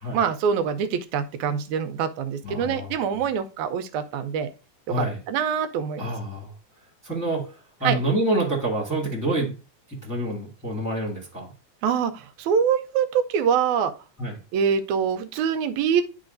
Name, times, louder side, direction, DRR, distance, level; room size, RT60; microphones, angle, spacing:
voice 1, 0.1-4.5 5.0-6.1 7.8-8.0 11.8-13.9 14.5-16.0, right 7 dB, 90° right, 8 dB, 2.1 m, -24 dB
voice 2, 2.4-3.0 4.9-5.2 6.0-6.5 7.0-9.6 9.9-11.5 14.2-14.4, right 1 dB, 10° left, -3 dB, 1.3 m, -27 dB
11.5 x 3.9 x 2.6 m, 0.32 s
omnidirectional pair, 3.3 m